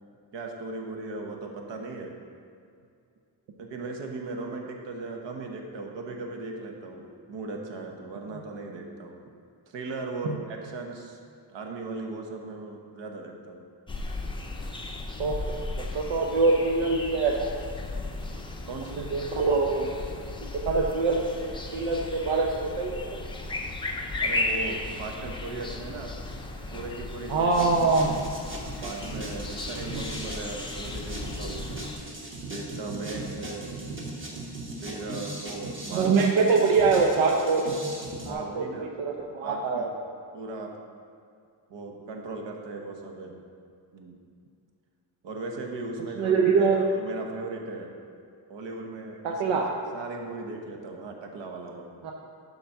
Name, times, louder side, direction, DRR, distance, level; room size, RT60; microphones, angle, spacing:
voice 1, 0.3-2.1 3.6-9.2 9.7-11.2 11.5-13.7 18.6-19.0 23.4-23.6 24.2-26.2 26.7-27.5 28.0-28.1 28.8-31.8 32.5-33.7 34.8-36.1 38.2-38.9 39.4-39.9 40.3-40.8 41.7-43.4 43.9-44.2 45.2-47.9 48.5-49.6 49.9-51.9, right 3 dB, 70° right, 1 dB, 1.2 m, -37 dB
sound 1, 13.9-32.0, left 2 dB, 10° left, 0.5 m, -35 dB
voice 2, 15.2-15.6 15.9-17.5 19.0-19.9 20.6-23.0 27.3-28.1 35.9-37.6 38.3-39.9 46.2-46.8 49.2-49.7 52.0-52.1, right 4 dB, 85° right, 0 dB, 0.9 m, -24 dB
sound 2, 27.5-38.3, right 2 dB, 25° right, 1.3 m, -38 dB
11.5 x 4.1 x 5.8 m, 2.3 s
wide cardioid pair, 170°, 46 cm